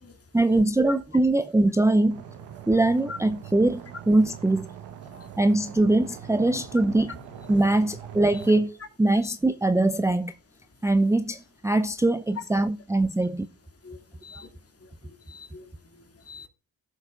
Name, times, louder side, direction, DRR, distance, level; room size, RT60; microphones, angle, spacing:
voice 1, 0.3-2.2 2.7-4.7 5.4-7.2 7.5-10.3 10.8-13.5, right 2 dB, 5° right, 0.5 m, -22 dB
sound 1, 2.1-8.6, right 8 dB, 85° right, 1.3 m, -42 dB
voice 2, 13.8-14.5 14.8-14.9 15.3-15.6 16.3-16.5, left 3 dB, 35° left, 2.6 m, -43 dB
16.5 x 6.6 x 2.4 m
supercardioid pair, 55°, 40 cm